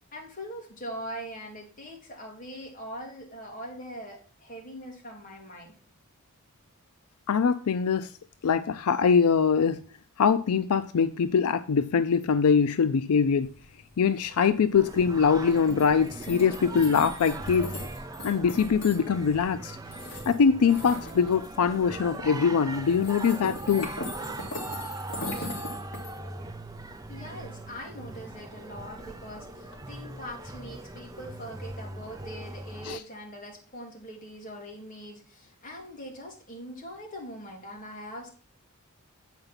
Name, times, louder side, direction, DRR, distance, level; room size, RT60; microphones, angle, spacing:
voice 1, 0.1-5.7 27.1-38.3, equal, 40° left, 2.5 m, -42 dB
voice 2, 7.3-8.1 8.4-9.8 10.2-13.5 14.0-17.7 18.2-19.8 20.3-23.9 25.4-25.5 32.8-33.0, left 6 dB, 85° left, 0.4 m, -23 dB
sound 1, 13.4-29.8, left 2 dB, 55° left, 2.2 m, -42 dB
Singing, 14.7-33.0, right 2 dB, 15° right, 0.4 m, -40 dB
8.0 x 5.2 x 5.8 m
head